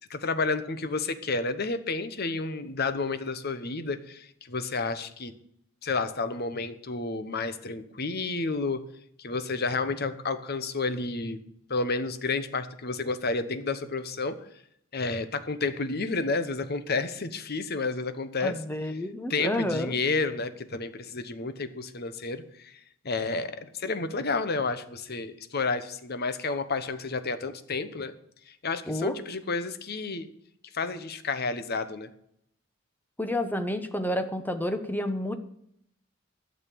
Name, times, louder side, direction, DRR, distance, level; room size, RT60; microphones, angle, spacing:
voice 1, 0.1-5.3 5.8-8.8 9.2-11.4 11.7-14.5 14.9-18.6 19.3-22.8 23.0-28.1 28.5-30.3 30.7-32.1, left 3 dB, 50° left, 11 dB, 1.0 m, -30 dB
voice 2, 18.4-19.9 28.9-29.2 33.2-35.3, left 1 dB, 10° left, 8 dB, 1.0 m, -30 dB
12.5 x 6.7 x 8.5 m, 0.72 s
head